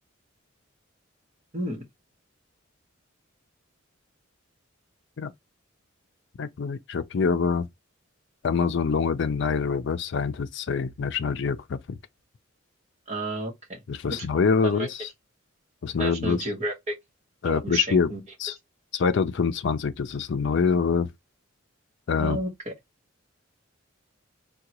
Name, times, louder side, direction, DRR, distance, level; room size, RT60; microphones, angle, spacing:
voice 1, 1.5-1.8 13.1-13.8 14.1-14.3 14.6-14.9 16.0-16.9 17.4-18.2 22.2-22.7, right 1 dB, 35° right, 1.1 m, -31 dB
voice 2, 6.4-7.7 8.4-12.0 13.9-15.1 15.8-16.4 17.4-18.1 18.4-18.5 18.9-21.1 22.1-22.4, left 5 dB, 60° left, 0.4 m, -25 dB
3.7 x 2.2 x 2.9 m
head